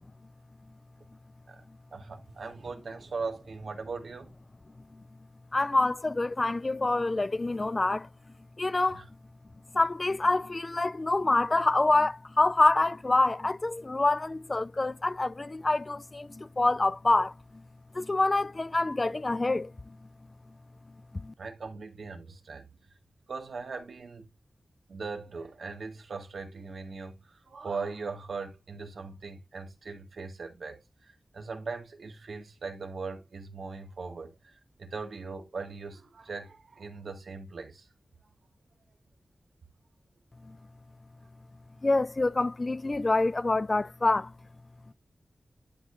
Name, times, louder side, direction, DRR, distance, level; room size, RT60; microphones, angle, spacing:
voice 1, 1.9-4.3 8.9-9.0 21.4-22.7 23.3-24.3 24.9-30.8 31.3-37.9, right 4 dB, 80° right, 1.9 m, -39 dB
voice 2, 5.5-8.1 8.6-9.0 9.7-17.3 17.9-20.0 21.2-21.3 40.4-40.6 41.8-44.3, left 2 dB, 35° left, 0.3 m, -26 dB
11.5 x 4.7 x 2.6 m
wide cardioid pair, 75°, 0 cm